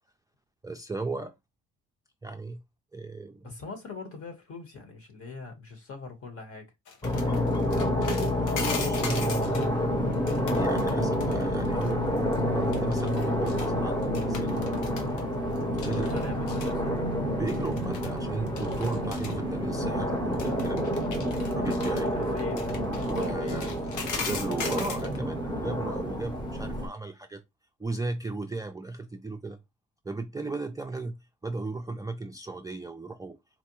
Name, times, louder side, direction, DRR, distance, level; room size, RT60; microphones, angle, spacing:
voice 1, 0.6-1.3 2.2-2.6 2.9-3.5 7.2-7.4 8.0-9.8 10.5-14.7 15.8-16.1 16.4-16.5 17.4-21.0 21.5-22.3 23.1-23.7 24.2-27.4 27.8-29.6 30.0-33.4, right 3 dB, 10° right, 0.4 m, -36 dB
voice 2, 3.4-6.6 15.8-17.1 22.1-22.7 23.2-24.1, left 4 dB, 50° left, 1.3 m, -41 dB
sound 1, 6.9-9.7 10.1-11.9 12.2-12.4 12.7-13.7 14.0-15.2 15.6-16.7 17.5-18.2 18.5-19.4 20.3-25.2, left 5 dB, 85° left, 0.9 m, -39 dB
sound 2, 7.0-26.9, equal, 15° left, 0.9 m, -28 dB
4.2 x 2.2 x 2.9 m
cardioid pair, 90°, 30 cm